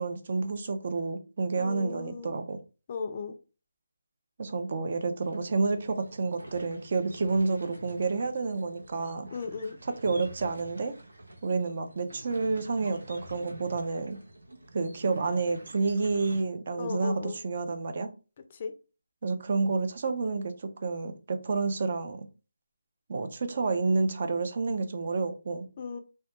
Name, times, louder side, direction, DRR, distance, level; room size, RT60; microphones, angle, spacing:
voice 1, 0.0-2.6 4.4-9.3 10.0-10.9 11.4-14.2 14.7-18.1 19.2-22.3 23.1-25.7, right 3 dB, 50° right, 0.4 m, -29 dB
voice 2, 1.6-2.3 2.9-3.4 9.3-9.8 16.7-17.4 18.5-18.7 25.8-26.0, left 5 dB, 35° left, 0.3 m, -36 dB
sound 1, 5.2-16.4, right 1 dB, 90° right, 0.8 m, -48 dB
2.2 x 2.2 x 2.8 m
figure-of-eight pair, 160°, 0 cm